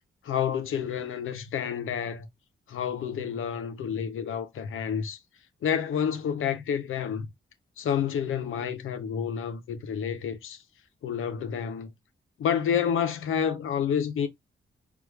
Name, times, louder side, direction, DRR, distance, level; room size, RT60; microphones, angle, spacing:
voice 1, 0.2-2.3 2.7-5.2 5.6-7.3 7.8-10.6 11.0-11.9 12.4-14.3, left 8 dB, 85° left, 0.7 m, -29 dB
4.7 x 3.5 x 2.3 m
supercardioid pair, 45°, 21 cm